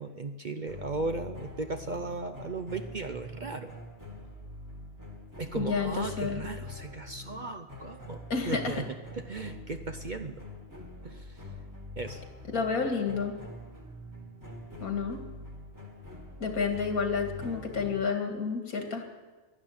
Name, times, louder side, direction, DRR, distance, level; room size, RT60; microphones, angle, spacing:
voice 1, 0.0-3.7 5.4-10.4 11.0-11.5 12.0-12.2, right 3 dB, 45° right, 7 dB, 0.6 m, -36 dB
sound 1, 0.7-18.1, left 2 dB, 15° right, 1.8 m, -45 dB
voice 2, 5.5-6.4 8.3-8.7 12.5-13.3 14.8-15.2 16.4-19.1, left 5 dB, 90° left, 4 dB, 2.5 m, -30 dB
12.0 x 12.0 x 9.6 m, 1.3 s
omnidirectional pair, 1.5 m